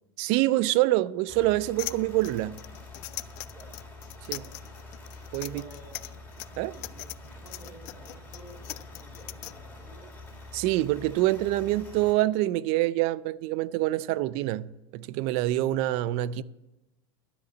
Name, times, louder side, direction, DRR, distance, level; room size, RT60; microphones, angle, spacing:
voice 1, 0.2-2.6 4.3-4.4 5.3-5.6 6.6-6.7 10.5-16.4, right 16 dB, 50° right, 0.4 m, -26 dB
sound 1, 1.3-12.1, left 2 dB, 10° left, 2.8 m, -46 dB
sound 2, 1.8-9.5, left 22 dB, 55° left, 0.4 m, -40 dB
voice 2, 3.4-3.7 4.3-4.5 5.4-6.0 6.7-10.1, equal, 15° right, 3.8 m, -51 dB
12.5 x 5.1 x 8.1 m
supercardioid pair, 135°, 13 cm